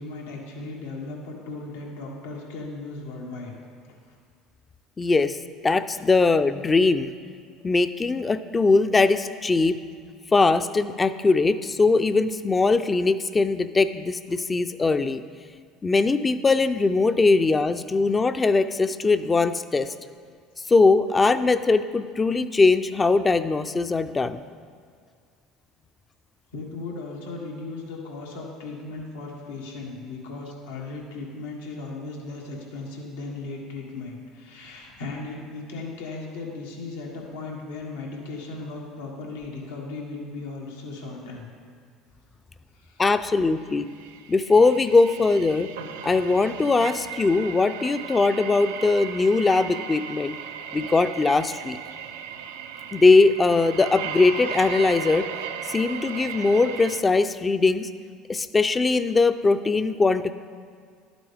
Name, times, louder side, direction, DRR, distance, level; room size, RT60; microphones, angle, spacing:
voice 1, 0.0-3.5 3.8-4.1 26.5-41.5 42.7-43.1, left 3 dB, 90° left, -2 dB, 1.6 m, -37 dB
voice 2, 5.0-5.4 5.6-7.1 7.6-9.8 10.3-15.2 15.8-19.9 20.7-24.4 43.0-43.9 44.3-45.7 46.0-50.3 50.7-51.8 52.9-55.3 55.7-57.9 58.3-60.3, left 3 dB, 25° left, 11 dB, 0.4 m, -21 dB
sound 1, 43.9-57.0, right 8 dB, 85° right, 0.5 m, -36 dB
12.0 x 9.0 x 3.5 m, 2.1 s
supercardioid pair, 85°, 0 cm